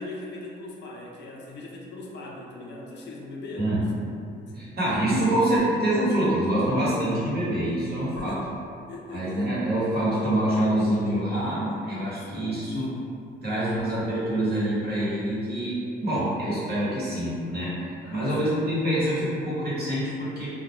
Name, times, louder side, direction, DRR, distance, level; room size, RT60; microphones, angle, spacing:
voice 1, 0.0-3.8 8.1-8.5 8.9-9.4 12.1-12.5 18.0-18.6, left 2 dB, 60° left, -2 dB, 0.5 m, -40 dB
voice 2, 4.5-8.4 9.1-12.9 13.4-17.7 18.1-20.5, right 1 dB, 55° right, -9 dB, 1.1 m, -25 dB
2.3 x 2.1 x 2.9 m, 2.5 s
cardioid pair, 90°, 20 cm